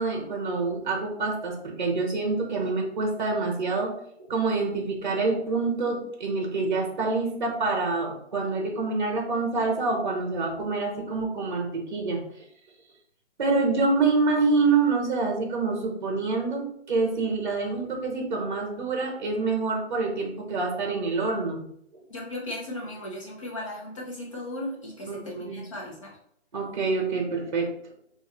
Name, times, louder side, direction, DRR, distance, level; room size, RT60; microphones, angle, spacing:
voice 1, 0.0-3.9 4.3-12.2 13.4-21.6 25.1-25.6 26.5-27.7, right 3 dB, 40° right, 2 dB, 0.8 m, -26 dB
voice 2, 22.1-26.2, left 1 dB, 30° left, -3 dB, 0.8 m, -36 dB
2.5 x 2.3 x 4.0 m, 0.71 s
hypercardioid pair, 170°, 35 cm